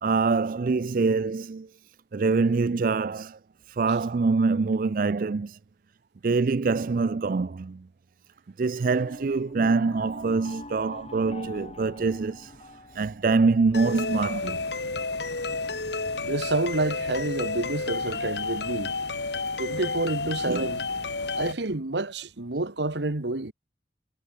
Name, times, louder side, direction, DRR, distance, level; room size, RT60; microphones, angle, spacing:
voice 1, 0.0-1.7 2.1-3.4 3.7-5.6 6.2-7.9 8.6-14.6 20.5-20.7, right 4 dB, 50° right, 0.4 m, -25 dB
sound 1, 8.8-13.8, left 2 dB, 35° left, 4.7 m, -45 dB
sound 2, 13.7-21.5, left 3 dB, 75° left, 2.9 m, -31 dB
voice 2, 16.2-18.9 19.6-20.8 21.4-23.5, right 2 dB, 80° right, 1.5 m, -29 dB
head